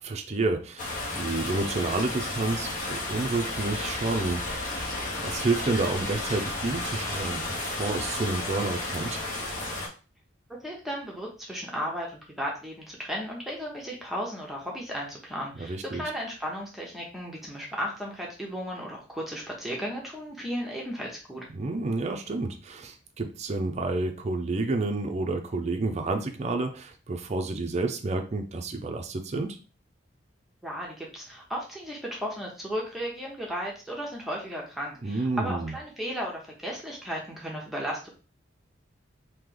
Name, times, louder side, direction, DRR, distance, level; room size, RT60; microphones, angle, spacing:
voice 1, 0.0-4.8 5.2-7.4 7.7-9.2 15.6-16.0 21.5-29.6 35.0-35.7, right 3 dB, 35° right, 5 dB, 0.5 m, -30 dB
sound 1, 0.8-9.9, left 2 dB, 45° left, 1.0 m, -33 dB
voice 2, 10.6-21.4 30.6-38.1, equal, ahead, -3 dB, 0.8 m, -35 dB
3.1 x 2.8 x 3.8 m, 0.34 s
head